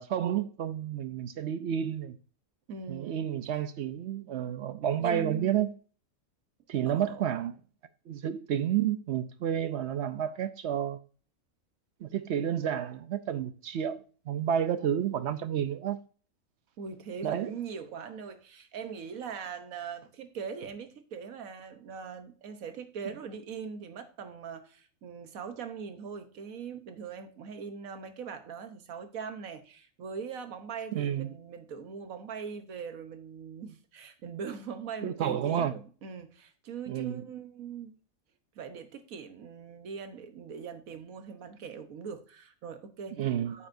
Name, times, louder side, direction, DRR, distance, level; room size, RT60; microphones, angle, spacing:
voice 1, 0.0-2.2 2.9-5.7 6.7-7.5 8.1-11.0 12.0-14.0 14.3-16.0 17.2-17.5 30.9-31.3 35.0-35.7 36.9-37.2 43.2-43.6, right 9 dB, 65° right, 0.7 m, -30 dB
voice 2, 2.7-3.2 5.0-5.6 6.9-7.3 16.8-38.0 38.5-43.7, right 6 dB, 85° right, 1.4 m, -41 dB
8.9 x 7.1 x 2.6 m
omnidirectional pair, 1.4 m